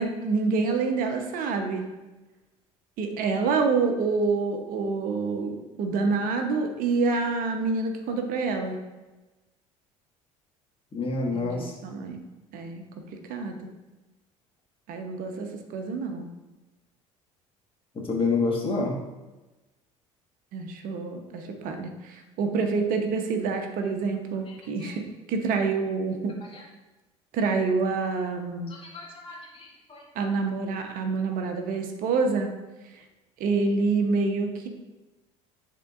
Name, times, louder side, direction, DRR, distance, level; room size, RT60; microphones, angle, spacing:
voice 1, 0.0-1.9 3.0-8.8 11.3-12.2 12.5-12.8 13.3-13.7 14.9-16.3 20.5-26.4 27.3-28.7 30.1-32.5 33.4-34.7, right 4 dB, 60° right, 5 dB, 0.9 m, -27 dB
voice 2, 10.9-11.8 17.9-19.0 24.8-24.9 26.5-26.6 28.7-30.0, left 3 dB, 35° left, -1 dB, 1.8 m, -29 dB
10.5 x 3.8 x 2.5 m, 1.1 s
hypercardioid pair, 65°, 17 cm